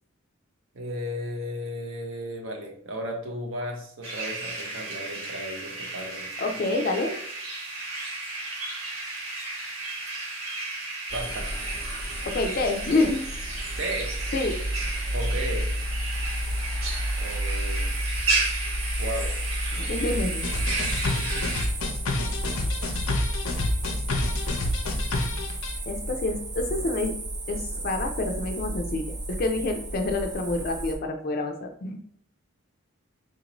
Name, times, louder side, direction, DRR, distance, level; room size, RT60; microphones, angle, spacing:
voice 1, 0.7-6.3 11.1-11.5 13.8-14.1 15.1-15.7 17.2-17.9 19.0-19.3 21.1-21.5, equal, 65° right, 2 dB, 0.8 m, -34 dB
sound 1, 4.0-21.7, right 3 dB, 85° right, 1.2 m, -33 dB
voice 2, 6.4-7.1 12.3-13.3 14.3-14.5 19.7-20.5 25.9-27.1 27.5-29.0 29.3-32.0, left 2 dB, 45° left, 4 dB, 0.4 m, -27 dB
sound 2, 11.1-31.0, equal, 20° right, 0.4 m, -31 dB
sound 3, 20.4-25.7, left 2 dB, 85° left, 0.6 m, -29 dB
3.8 x 2.6 x 2.9 m, 0.65 s
head